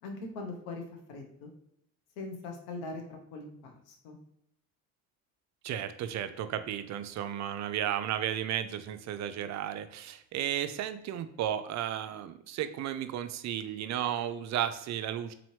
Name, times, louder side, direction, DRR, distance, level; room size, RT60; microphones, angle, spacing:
voice 1, 0.0-0.8 1.1-1.5 2.2-4.2, left 3 dB, 80° left, 3 dB, 1.0 m, -41 dB
voice 2, 5.6-15.3, right 10 dB, 50° right, 10 dB, 0.4 m, -34 dB
4.0 x 3.0 x 3.1 m, 0.76 s
supercardioid pair, 85°, 37 cm